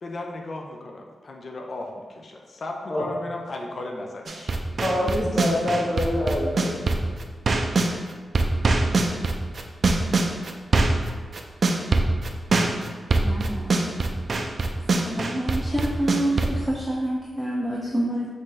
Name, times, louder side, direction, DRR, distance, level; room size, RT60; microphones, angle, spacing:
voice 1, 0.0-4.6 5.1-5.4, left 2 dB, 55° left, 1 dB, 0.5 m, -36 dB
sound 1, 4.3-7.9 8.3-16.5, right 3 dB, 55° right, 0.4 m, -22 dB
voice 2, 4.8-6.8, left 1 dB, 15° left, -5 dB, 0.9 m, -25 dB
voice 3, 13.2-13.9 14.9-18.3, right 1 dB, ahead, -4 dB, 0.5 m, -27 dB
5.5 x 2.6 x 3.2 m, 1.5 s
wide cardioid pair, 95°, 0 cm